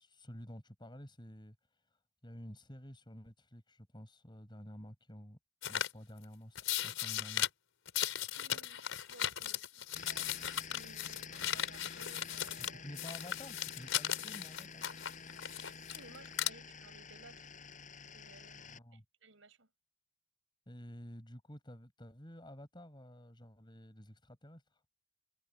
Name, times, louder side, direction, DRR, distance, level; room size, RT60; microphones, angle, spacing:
voice 1, 0.0-1.6 2.2-5.4 5.6-7.5 12.7-14.9 18.6-19.0 20.7-24.8, equal, 25° left, 6.9 m, -51 dB
sound 1, 5.6-5.9 6.6-7.5 7.9-12.7 13.0-16.0 16.3-16.5, left 10 dB, 80° left, 4.5 m, -37 dB
voice 2, 8.4-12.8 15.4-17.5 18.1-19.7, right 3 dB, 75° right, 6.7 m, -59 dB
sound 2, 9.9-18.8, left 5 dB, 40° left, 5.9 m, -50 dB
head